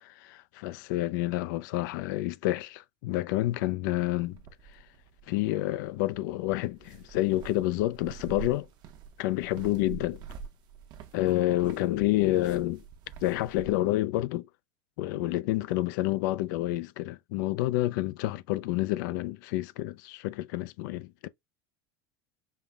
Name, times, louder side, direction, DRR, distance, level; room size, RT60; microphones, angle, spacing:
voice 1, 0.0-4.4 4.7-4.8 5.3-8.7 9.2-10.2 11.1-12.8 13.2-14.5 15.0-21.3, left 16 dB, 80° left, 0.4 m, -29 dB
sound 1, 4.3-13.8, right 7 dB, 45° right, 0.8 m, -47 dB
5.4 x 2.1 x 3.4 m
cardioid pair, 150°, 10 cm